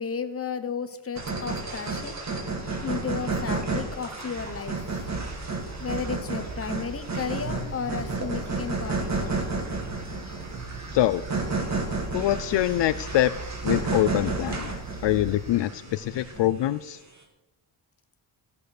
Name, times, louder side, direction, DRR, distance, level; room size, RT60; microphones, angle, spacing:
voice 1, 0.0-2.2 2.8-4.9 5.8-9.3, left 6 dB, 30° left, 9 dB, 1.0 m, -33 dB
sound 1, 1.1-16.6, right 3 dB, 40° right, 2.4 m, -32 dB
sound 2, 4.3-15.5, right 3 dB, 85° right, 2.6 m, -40 dB
voice 2, 12.1-13.3 13.6-14.7 15.0-17.0, left 14 dB, 70° left, 13 dB, 0.5 m, -24 dB
14.0 x 6.8 x 6.5 m, 0.99 s
wide cardioid pair, 135°, 44 cm